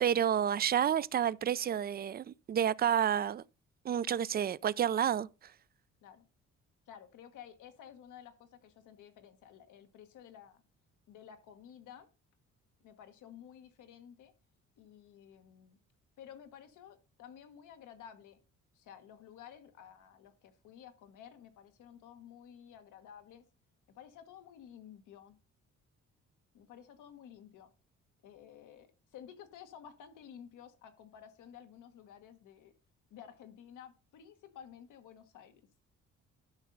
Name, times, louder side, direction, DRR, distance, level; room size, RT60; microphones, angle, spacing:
voice 1, 0.0-3.4 3.8-5.3, right 9 dB, 35° right, 0.4 m, -30 dB
voice 2, 6.9-10.6 11.1-12.1 12.8-14.3 14.8-15.8 16.2-18.4 18.7-23.4 23.9-25.4 26.5-27.7 28.2-32.7 33.1-35.6, left 9 dB, 85° left, 1.4 m, -53 dB
12.0 x 5.4 x 3.9 m
cardioid pair, 90°, 30 cm